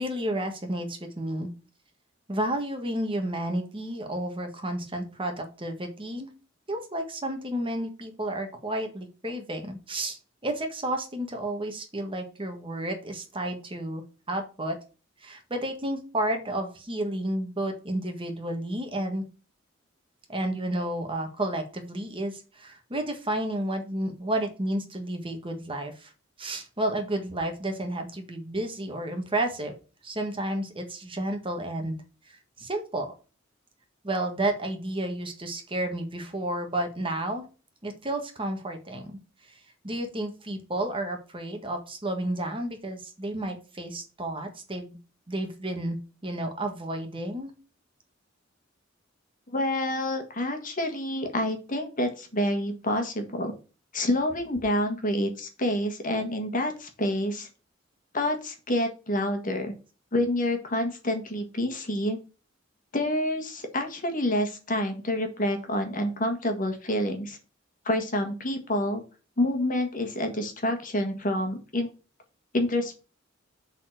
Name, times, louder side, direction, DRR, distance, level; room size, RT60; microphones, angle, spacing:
voice 1, 0.0-1.5 2.3-6.3 6.7-14.0 14.3-14.8 15.2-19.2 20.3-26.1 26.4-29.7 30.0-32.0 32.3-33.1 34.0-37.4 37.8-39.1 39.8-45.0 45.3-47.5, right 1 dB, 25° right, 5 dB, 1.5 m, -31 dB
voice 2, 49.5-53.5 53.9-57.5 58.1-59.7 60.1-62.2 62.9-67.4 67.8-69.0 69.4-71.9 72.5-73.0, left 1 dB, 45° left, 5 dB, 1.6 m, -28 dB
7.3 x 4.1 x 6.4 m, 0.34 s
head